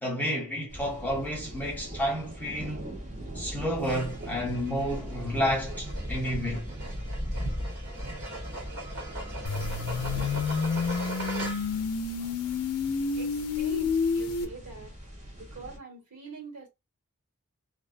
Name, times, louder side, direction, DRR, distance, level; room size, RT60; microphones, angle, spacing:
voice 1, 0.0-2.9 3.3-6.7, equal, 10° left, 0.9 m, -30 dB
sound 1, 0.7-15.8, equal, 30° right, 0.9 m, -39 dB
sound 2, 3.8-11.9, right 1 dB, 50° right, 1.3 m, -40 dB
sound 3, 9.5-14.5, left 5 dB, 80° left, 0.4 m, -29 dB
voice 2, 13.2-15.0 15.3-16.7, right 3 dB, 85° right, 1.3 m, -43 dB
2.4 x 2.2 x 2.5 m
head